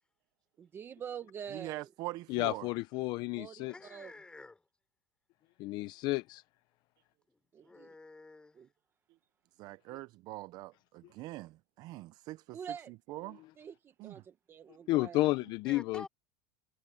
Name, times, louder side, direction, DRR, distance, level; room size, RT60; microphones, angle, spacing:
voice 1, 0.6-1.9 3.3-3.6 3.9-4.1 7.5-7.9 8.5-8.7 12.5-12.9 13.6-15.2, right 8 dB, 20° right, 1.0 m, -45 dB
voice 2, 1.5-2.7 9.6-12.6 13.1-13.4 14.0-14.1, right 18 dB, 35° right, 0.4 m, -43 dB
voice 3, 2.3-3.7 5.6-6.4 14.9-16.1, left 19 dB, 40° left, 0.5 m, -31 dB
voice 4, 3.7-4.6 7.6-8.6 15.7-16.1, left 3 dB, 10° left, 3.7 m, -49 dB
supercardioid pair, 160°, 11 cm